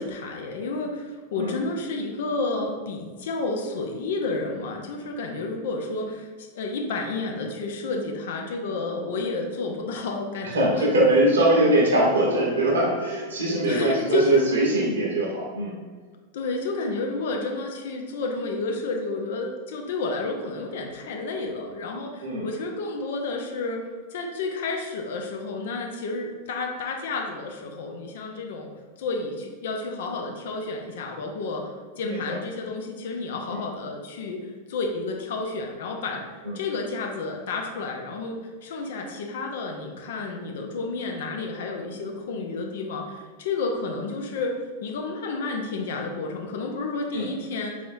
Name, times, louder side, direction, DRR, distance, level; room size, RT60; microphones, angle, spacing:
voice 1, 0.0-10.9 13.6-14.4 16.3-28.7 29.0-31.7 32.0-44.5 44.8-47.7, left 3 dB, 55° left, 2 dB, 0.5 m, -31 dB
voice 2, 10.4-15.8 22.2-22.5 32.0-32.4 33.5-33.6 36.4-36.6 47.1-47.3, right 1 dB, 65° right, -2 dB, 0.9 m, -22 dB
3.4 x 3.4 x 2.6 m, 1.5 s
figure-of-eight pair, 90°, 0 cm